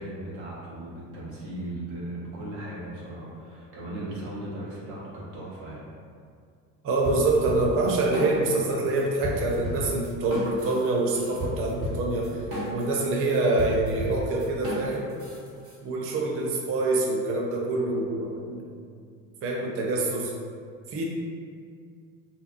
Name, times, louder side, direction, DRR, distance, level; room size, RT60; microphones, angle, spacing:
voice 1, 0.0-5.9, right 1 dB, 80° right, -7 dB, 0.9 m, -37 dB
voice 2, 6.8-12.4 12.7-15.1 15.8-18.6 19.4-20.3 20.9-21.0, right 2 dB, 35° right, -2 dB, 0.4 m, -26 dB
sound 1, 7.0-8.7 9.0-15.8, equal, 50° right, 1.0 m, -34 dB
2.5 x 2.3 x 2.4 m, 2.2 s
hypercardioid pair, 80°, 41 cm